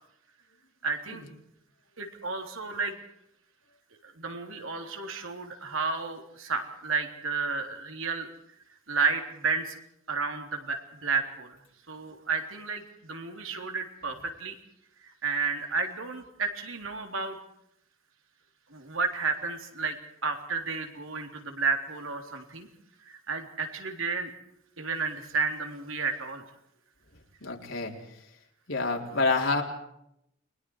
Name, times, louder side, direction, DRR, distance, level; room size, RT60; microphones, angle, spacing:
voice 1, 0.8-1.2 2.0-3.0 4.0-8.3 8.9-9.8 10.1-11.6 11.9-14.5 15.2-17.4 18.7-20.0 20.2-22.7 23.1-24.3 24.8-26.4, right 4 dB, 80° right, 4 dB, 3.6 m, -32 dB
voice 2, 27.4-28.2 28.7-29.6, left 3 dB, 70° left, 0 dB, 4.1 m, -28 dB
29.5 x 22.0 x 4.9 m, 0.77 s
head